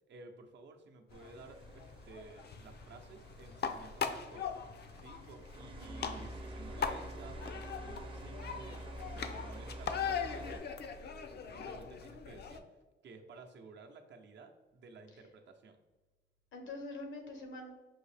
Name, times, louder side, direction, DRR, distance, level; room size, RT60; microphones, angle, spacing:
voice 1, 0.1-4.7 5.0-10.6 11.3-15.8, right 4 dB, 70° right, 4 dB, 0.6 m, -54 dB
sound 1, 1.1-12.6, left 6 dB, 60° left, 0.5 m, -41 dB
sound 2, 1.1-10.6, right 2 dB, 25° right, 0.6 m, -49 dB
voice 2, 5.6-6.2 16.5-17.8, left 2 dB, 90° left, 3 dB, 1.0 m, -46 dB
5.5 x 2.7 x 3.3 m, 1.2 s
wide cardioid pair, 125°, 19 cm